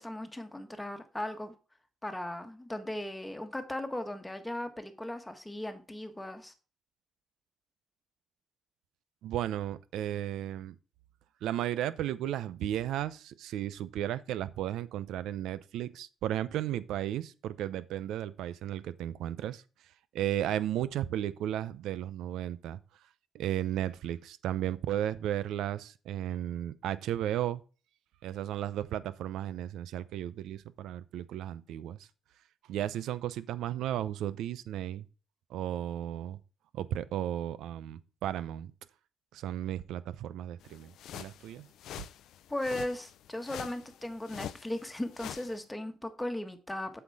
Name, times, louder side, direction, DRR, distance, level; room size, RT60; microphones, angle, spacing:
voice 1, 0.0-1.5 2.0-6.5 42.5-47.0, left 1 dB, 10° left, 1.4 m, -37 dB
voice 2, 9.2-10.8 11.4-19.6 20.1-22.8 23.3-27.6 28.2-32.1 32.7-35.1 35.5-36.4 36.7-38.7 39.3-41.7 42.0-42.1, right 11 dB, 85° right, 0.6 m, -34 dB
sound 1, 40.6-45.6, left 11 dB, 80° left, 0.4 m, -46 dB
7.9 x 5.8 x 4.8 m
cardioid pair, 90°, 0 cm